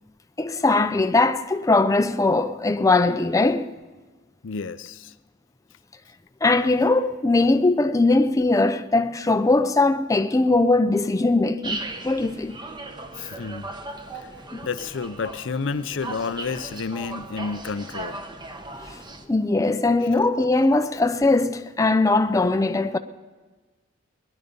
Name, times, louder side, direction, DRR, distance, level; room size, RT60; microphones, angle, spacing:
voice 1, 0.4-3.7 6.4-12.5 14.5-14.6 19.3-23.0, left 2 dB, 15° left, 0.5 m, -20 dB
voice 2, 4.4-5.1 13.2-13.7 14.6-18.2, left 4 dB, 75° left, 0.5 m, -30 dB
sound 1, 11.6-19.2, right 2 dB, 25° right, 0.9 m, -37 dB
20.0 x 10.5 x 5.3 m
head